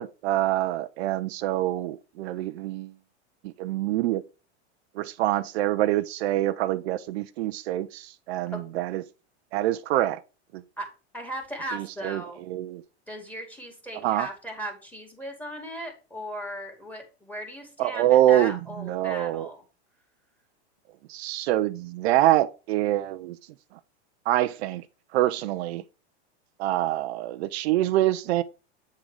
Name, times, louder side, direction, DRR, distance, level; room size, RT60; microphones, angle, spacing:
voice 1, 0.0-2.9 3.4-4.2 5.0-9.0 9.5-10.2 10.5-10.6 12.0-12.2 12.5-12.8 14.0-14.3 17.8-19.5 21.1-23.4 24.3-24.8 25.1-25.8 26.6-28.4, right 14 dB, 65° right, 0.5 m, -25 dB
voice 2, 10.8-12.4 13.1-19.6, equal, 5° left, 2.1 m, -37 dB
8.5 x 3.8 x 4.7 m
supercardioid pair, 135°, 34 cm